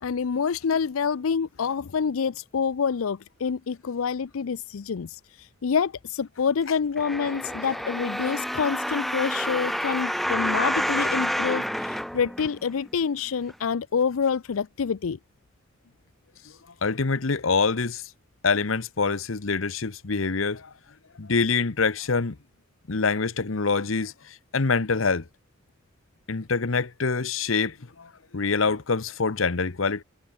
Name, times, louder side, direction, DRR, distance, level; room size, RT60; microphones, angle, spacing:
voice 1, 0.0-15.2, left 6 dB, 90° left, 0.5 m, -27 dB
sound 1, 7.0-12.9 13.5-13.6, equal, ahead, 1.2 m, -28 dB
voice 2, 16.8-18.1 18.4-20.7 21.2-22.4 22.9-25.2 26.3-30.0, left 4 dB, 70° left, 1.0 m, -25 dB
head